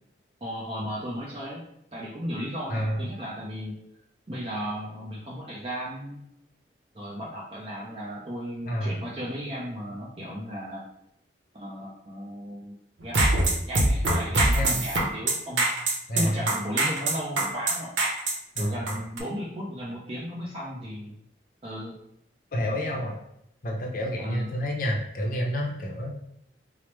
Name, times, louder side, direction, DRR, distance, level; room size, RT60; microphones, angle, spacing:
voice 1, 0.4-1.6 1.9-3.8 4.3-6.2 6.9-10.8 11.5-13.3 13.7-15.7 16.1-17.9 18.6-21.2 21.6-22.0 24.2-24.5, equal, 30° right, -5 dB, 0.5 m, -35 dB
voice 2, 2.7-3.1 8.7-8.9 14.5-14.8 16.1-16.5 18.6-19.0 22.5-23.2 23.6-26.1, equal, 50° left, 0 dB, 0.6 m, -29 dB
sound 1, 13.0-19.2, right 2 dB, 90° right, 0.8 m, -23 dB
4.7 x 2.0 x 3.1 m, 0.77 s
head